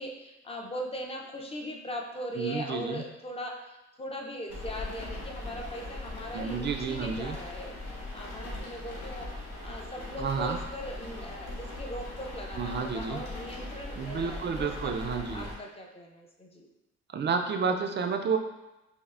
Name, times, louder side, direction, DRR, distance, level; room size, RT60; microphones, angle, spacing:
voice 1, 0.0-7.7 8.1-9.3 9.6-16.7, equal, 20° left, 1 dB, 0.5 m, -40 dB
voice 2, 2.3-3.0 6.3-7.4 10.2-10.6 12.6-13.2 13.9-15.5 17.1-18.4, right 5 dB, 35° right, 5 dB, 0.4 m, -30 dB
sound 1, 4.5-15.5, left 2 dB, 80° left, 1.0 m, -40 dB
5.3 x 2.0 x 2.4 m, 0.99 s
cardioid pair, 90°, 30 cm